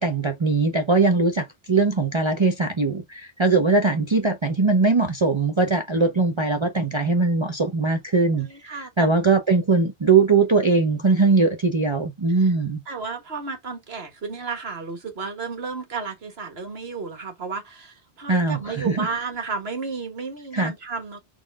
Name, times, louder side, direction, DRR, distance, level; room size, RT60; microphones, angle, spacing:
voice 1, 0.0-12.8 18.3-19.1 20.5-20.7, right 3 dB, 35° right, 0.6 m, -21 dB
voice 2, 8.3-9.1 12.4-12.5 12.9-21.2, right 4 dB, 70° right, 1.7 m, -32 dB
4.2 x 3.1 x 3.4 m
omnidirectional pair, 1.1 m